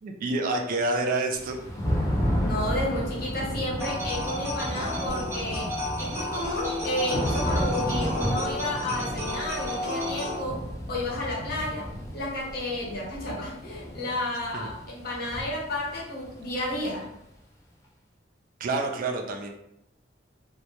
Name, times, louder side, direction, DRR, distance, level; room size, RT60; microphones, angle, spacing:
voice 1, 0.0-1.6 14.5-14.7 18.6-19.5, right 2 dB, 45° right, 3 dB, 0.3 m, -28 dB
Thunder / Rain, 1.4-17.1, equal, 15° left, 0.5 m, -32 dB
voice 2, 2.4-17.1, left 1 dB, 55° left, -4 dB, 0.7 m, -32 dB
sound 1, 3.8-10.4, left 1 dB, 15° right, 0.8 m, -32 dB
2.1 x 2.0 x 2.9 m, 0.83 s
head